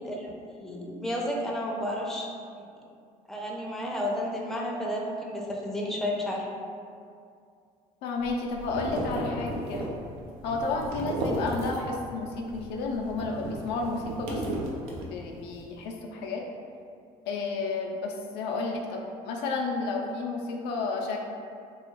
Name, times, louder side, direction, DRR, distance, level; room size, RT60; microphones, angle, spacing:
voice 1, 0.0-2.3 2.6-2.7 3.3-6.5, left 1 dB, ahead, -2 dB, 0.5 m, -32 dB
voice 2, 8.0-9.9 10.4-14.7 15.0-16.5 17.3-21.2, left 3 dB, 75° left, 0 dB, 0.4 m, -32 dB
sound 1, 8.2-12.1 12.4-15.5, right 1 dB, 85° right, 0.5 m, -34 dB
2.4 x 2.3 x 2.9 m, 2.3 s
supercardioid pair, 70°, 18 cm